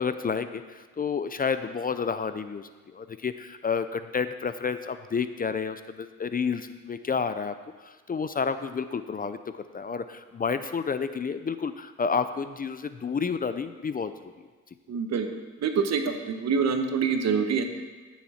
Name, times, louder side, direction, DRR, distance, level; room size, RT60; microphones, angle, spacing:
voice 1, 0.0-7.5 7.8-14.3, left 5 dB, 30° left, 11 dB, 0.5 m, -30 dB
voice 2, 14.9-15.3 15.6-17.6, right 5 dB, 60° right, 6 dB, 1.2 m, -25 dB
14.0 x 7.2 x 4.3 m, 1.4 s
cardioid pair, 90°, 30 cm